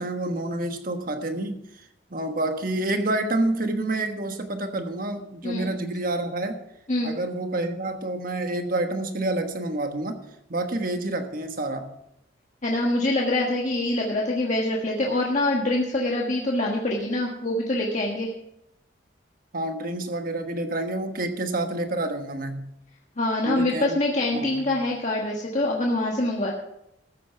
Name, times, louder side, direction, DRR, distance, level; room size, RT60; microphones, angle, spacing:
voice 1, 0.0-1.6 2.1-6.6 7.0-10.2 10.5-11.9 19.5-22.7 23.4-24.0 24.3-24.8, right 2 dB, 50° right, 6 dB, 1.3 m, -28 dB
voice 2, 12.6-18.3 23.2-26.5, left 1 dB, 40° left, -2 dB, 1.5 m, -25 dB
14.0 x 8.5 x 5.7 m, 0.81 s
head